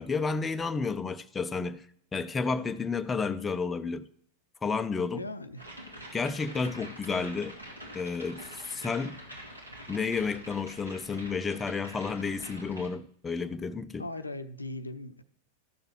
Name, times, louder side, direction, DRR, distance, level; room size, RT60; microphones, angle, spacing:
voice 1, 0.0-1.8 2.1-4.0 4.6-5.2 6.1-7.5 7.9-9.2 9.9-14.0, left 4 dB, 15° left, 0.5 m, -31 dB
voice 2, 5.1-5.6 14.0-15.2, left 2 dB, 80° left, 0.6 m, -38 dB
sound 1, 5.6-12.9, equal, 85° right, 2.6 m, -45 dB
14.0 x 6.8 x 4.4 m
figure-of-eight pair, 90°, 0 cm